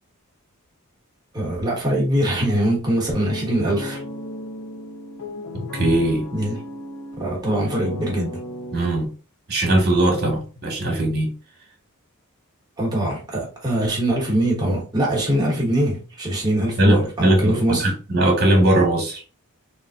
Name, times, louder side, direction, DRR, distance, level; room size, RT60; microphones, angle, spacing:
voice 1, 1.3-4.0 6.3-6.6 7.2-8.4 12.8-17.9, right 1 dB, 20° right, 1.1 m, -22 dB
sound 1, 2.9-9.1, left 1 dB, 75° left, 0.6 m, -35 dB
voice 2, 5.5-6.2 8.7-9.1 9.5-11.3 16.8-19.2, right 1 dB, 45° right, 1.1 m, -19 dB
3.4 x 2.5 x 2.3 m
head